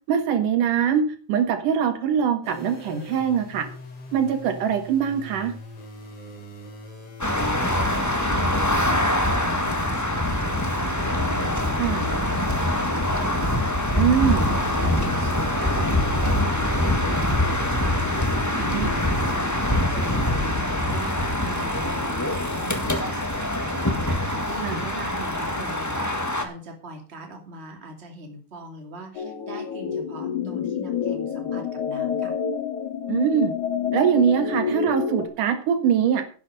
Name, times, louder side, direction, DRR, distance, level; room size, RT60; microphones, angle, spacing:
voice 1, 0.1-3.7 4.1-5.5 11.8-12.1 14.0-14.5 18.7-18.9 24.6-24.8 33.1-33.5 33.9-36.2, right 8 dB, 80° right, 8 dB, 3.0 m, -22 dB
sound 1, 2.4-21.3, left 1 dB, 45° left, 3.9 m, -42 dB
sound 2, 7.2-26.4, left 1 dB, 20° left, 0.4 m, -24 dB
voice 2, 7.4-32.4, right 1 dB, 20° right, 4 dB, 2.4 m, -40 dB
sound 3, 29.1-35.3, left 7 dB, 70° left, 3.0 m, -28 dB
10.5 x 8.3 x 6.5 m, 0.38 s
omnidirectional pair, 3.6 m